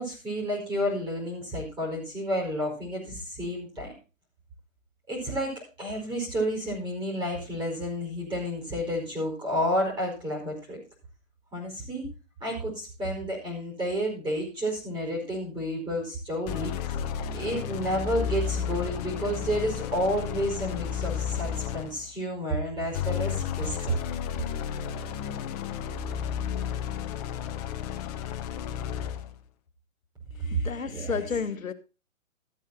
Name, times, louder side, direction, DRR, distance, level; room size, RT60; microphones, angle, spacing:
voice 1, 0.0-3.9 5.1-10.8 11.5-12.1 12.4-16.9 17.3-24.0 30.5-31.1, equal, 10° right, 4.8 m, -30 dB
sound 1, 16.5-22.1 22.9-29.3, left 9 dB, 30° left, 1.1 m, -32 dB
voice 2, 30.3-31.7, left 6 dB, 80° left, 1.3 m, -32 dB
13.5 x 8.6 x 4.2 m
figure-of-eight pair, 130°, 40 cm